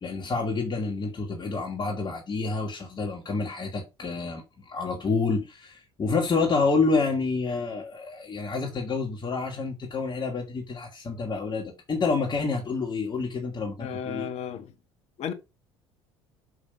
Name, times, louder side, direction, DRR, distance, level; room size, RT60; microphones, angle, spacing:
voice 1, 0.0-14.3, left 4 dB, 30° left, 2.2 m, -28 dB
voice 2, 13.8-14.7 15.2-15.3, left 8 dB, 50° left, 1.6 m, -33 dB
6.1 x 5.6 x 5.2 m
hypercardioid pair, 65°, 14 cm